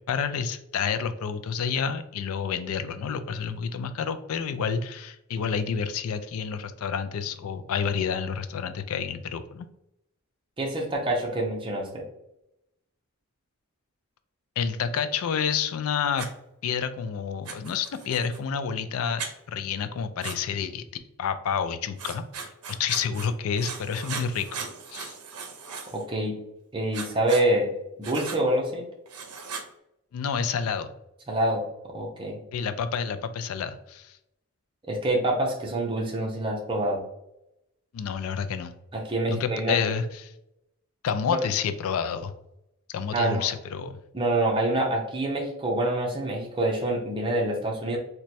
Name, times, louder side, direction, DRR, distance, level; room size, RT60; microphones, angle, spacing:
voice 1, 0.1-9.7 14.6-16.3 16.6-20.8 21.2-22.5 22.8-24.7 24.9-25.2 30.1-30.9 32.5-34.2 37.9-38.7 39.3-40.3 41.0-42.3 42.9-44.0, left 6 dB, 70° left, 10 dB, 0.3 m, -29 dB
voice 2, 10.6-12.0 25.9-26.4 26.7-27.7 28.0-28.9 31.3-32.4 34.9-37.0 38.9-39.8 43.1-43.5 44.1-48.0, right 1 dB, 20° right, 0 dB, 0.6 m, -26 dB
Writing, 16.2-16.3 17.4-18.4 19.2-19.3 20.2-20.4 22.0-23.3 23.6-26.0 26.9-27.4 28.0-28.4 29.1-29.7, right 5 dB, 85° right, 0.6 m, -38 dB
3.1 x 2.2 x 4.1 m, 0.83 s
head